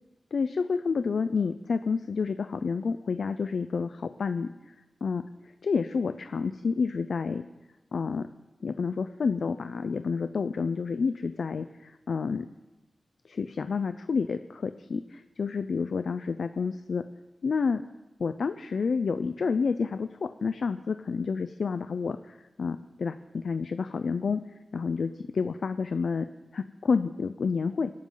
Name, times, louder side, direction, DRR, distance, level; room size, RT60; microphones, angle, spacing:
voice 1, 0.3-4.5 5.0-5.2 5.6-7.4 7.9-8.3 8.6-12.4 13.3-17.0 17.4-17.8 18.2-24.4 24.7-26.3 26.5-27.9, left 5 dB, 80° left, 10 dB, 0.5 m, -29 dB
26.0 x 12.5 x 3.9 m, 1.1 s
wide cardioid pair, 120°, 0 cm